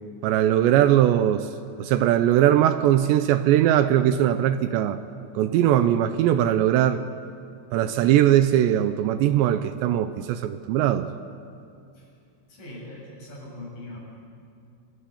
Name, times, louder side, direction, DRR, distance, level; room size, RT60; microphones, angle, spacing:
voice 1, 0.2-1.5 1.8-5.0 5.3-7.0 7.7-11.1, right 11 dB, 80° right, 10 dB, 2.7 m, -20 dB
voice 2, 12.5-14.0, left 1 dB, 45° left, -3 dB, 9.3 m, -41 dB
28.0 x 19.0 x 8.6 m, 2.5 s
omnidirectional pair, 5.5 m